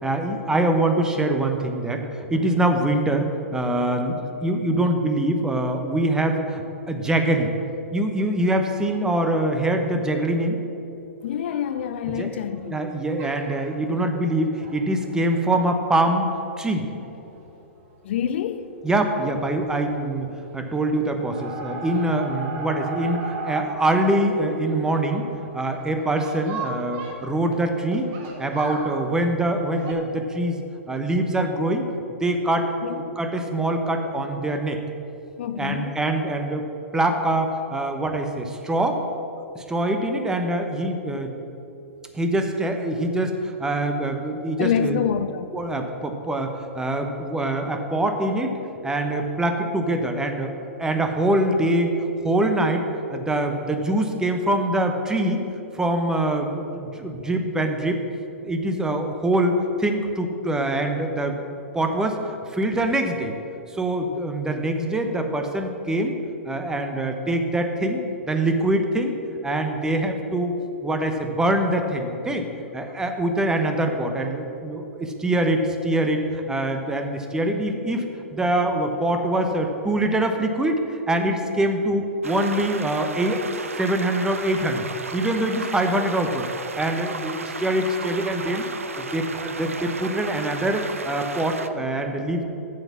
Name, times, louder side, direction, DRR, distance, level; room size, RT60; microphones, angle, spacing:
voice 1, 0.0-6.6 6.9-7.5 7.9-10.6 12.2-12.4 12.6-16.9 18.8-25.3 25.5-28.1 28.4-31.9 32.2-34.8 35.6-39.0 39.5-41.3 42.1-45.0 45.5-48.6 48.8-51.9 52.2-55.4 55.7-58.0 58.4-61.4 61.7-63.3 63.7-66.1 66.5-69.1 69.4-70.5 70.8-72.4 72.7-78.0 78.3-83.4 83.8-86.5 86.8-88.7 89.0-92.4, right 1 dB, 10° right, 0.9 m, -24 dB
voice 2, 11.2-12.8 18.0-18.7 32.8-33.2 35.4-35.9 44.6-45.5 57.1-57.2, left 8 dB, 60° left, 0.5 m, -27 dB
sound 1, 11.3-12.9 13.2-13.7 14.2-16.3 16.7-16.8 17.0-17.1 17.4-17.5 18.9-19.1 19.3-19.8 20.1-20.6 21.0-29.9, right 3 dB, 45° right, 1.7 m, -37 dB
sound 2, 82.2-91.7, right 4 dB, 90° right, 0.6 m, -34 dB
7.6 x 7.2 x 7.3 m
hypercardioid pair, 115°, 7 cm